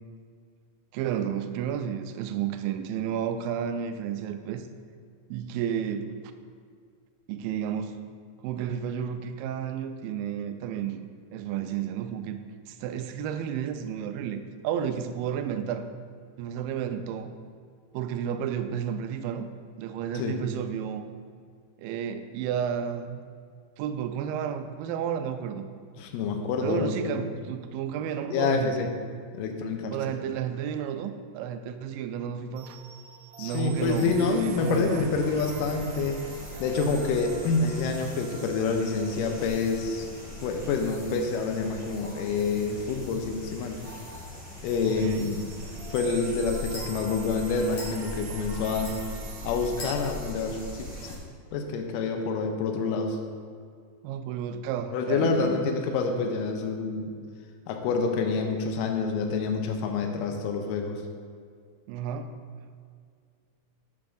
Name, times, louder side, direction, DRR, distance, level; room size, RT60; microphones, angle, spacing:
voice 1, 0.9-4.7 5.3-6.2 7.3-8.0 8.4-15.9 16.4-17.3 17.9-19.5 19.8-21.0 21.8-23.2 23.8-25.7 26.6-28.9 29.9-32.8 33.4-35.2 44.9-45.3 54.0-55.6 61.9-62.3, right 8 dB, 85° right, 8 dB, 2.3 m, -32 dB
voice 2, 26.0-27.1 28.3-28.9 29.3-30.0 33.4-36.2 36.6-40.1 40.4-43.8 44.6-45.5 45.9-48.9 49.4-51.2 51.5-53.2 54.9-57.1 57.7-61.0, left 4 dB, 80° left, 4 dB, 2.2 m, -27 dB
sound 1, 32.6-43.0 43.2-43.6 43.9-50.3, right 5 dB, 70° right, 2.2 m, -47 dB
sound 2, 33.7-51.2, left 1 dB, 15° left, 0.3 m, -41 dB
sound 3, 43.7-51.5, left 1 dB, 55° left, 2.9 m, -48 dB
11.5 x 7.7 x 2.6 m, 2.1 s
omnidirectional pair, 4.0 m